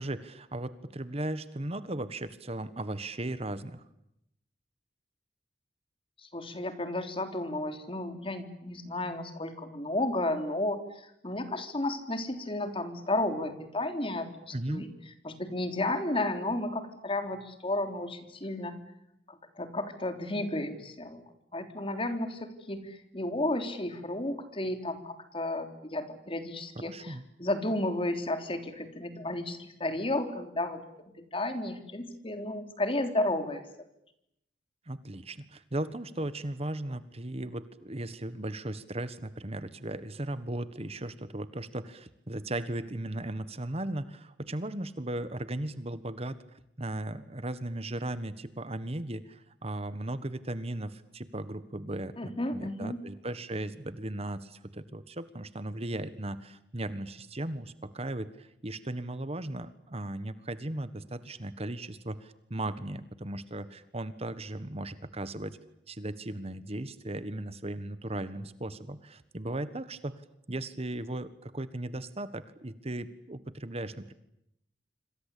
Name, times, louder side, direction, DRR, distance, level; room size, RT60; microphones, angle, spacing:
voice 1, 0.0-3.8 14.5-14.9 26.9-27.2 34.9-65.6 65.9-74.1, right 1 dB, 35° right, 13 dB, 1.4 m, -37 dB
voice 2, 6.2-14.9 15.2-18.8 19.3-21.2 21.5-30.8 31.3-33.9 52.2-53.0, left 1 dB, 30° left, 7 dB, 3.5 m, -33 dB
27.0 x 26.0 x 8.5 m, 0.79 s
head